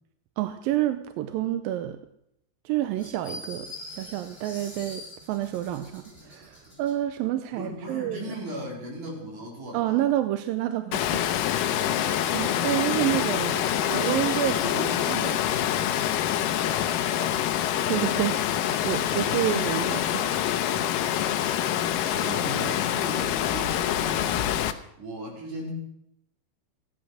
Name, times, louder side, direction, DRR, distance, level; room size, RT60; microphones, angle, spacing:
voice 1, 0.4-2.0 2.7-3.7 3.9-8.3 9.7-11.3 11.6-11.8 12.3-15.4 17.9-20.5 21.4-21.6 22.2-22.3, right 13 dB, 80° right, 9 dB, 2.2 m, -29 dB
sound 1, 3.0-7.0, left 2 dB, 15° left, 5.4 m, -43 dB
voice 2, 7.5-10.0 11.6-14.1 16.4-17.5 18.9-19.8 20.1-21.1 21.4-21.5 22.1-24.7 25.0-25.7, right 1 dB, 50° right, -3 dB, 5.8 m, -39 dB
Water, 10.9-24.7, left 11 dB, 75° left, 2.1 m, -26 dB
15.5 x 11.5 x 6.3 m, 0.77 s
omnidirectional pair, 4.5 m